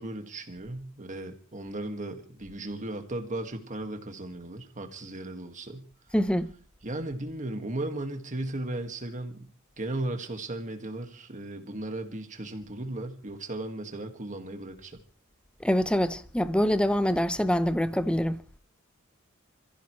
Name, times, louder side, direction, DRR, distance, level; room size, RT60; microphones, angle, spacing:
voice 1, 0.0-5.9 6.8-9.5 9.8-15.0, right 2 dB, 35° right, 1.9 m, -36 dB
voice 2, 6.1-6.5 15.6-18.4, equal, 5° left, 0.7 m, -25 dB
27.5 x 15.0 x 3.2 m
head